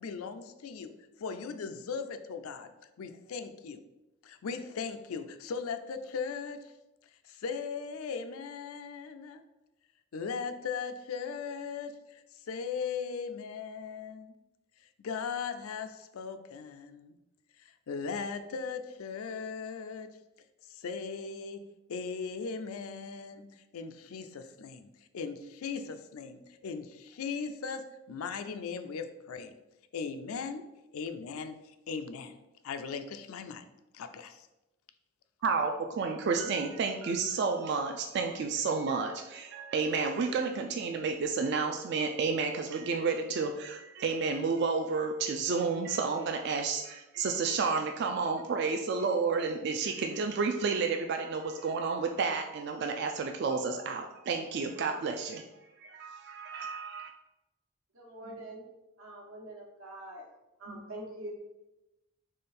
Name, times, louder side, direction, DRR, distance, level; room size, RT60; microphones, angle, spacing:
voice 1, 0.0-2.7 3.0-3.8 4.2-6.7 7.3-9.4 10.1-14.3 15.0-17.1 17.6-20.1 20.7-21.6 21.9-23.4 23.7-24.9 25.1-29.5 29.9-32.4 32.6-33.6 33.9-34.5, left 5 dB, 85° left, 9 dB, 0.4 m, -38 dB
voice 2, 35.4-55.4 55.8-57.1, right 4 dB, 50° right, 4 dB, 0.3 m, -31 dB
voice 3, 57.9-58.6 59.0-60.2 60.6-61.3, right 1 dB, 80° right, -2 dB, 1.2 m, -44 dB
3.8 x 3.2 x 4.2 m, 0.98 s
head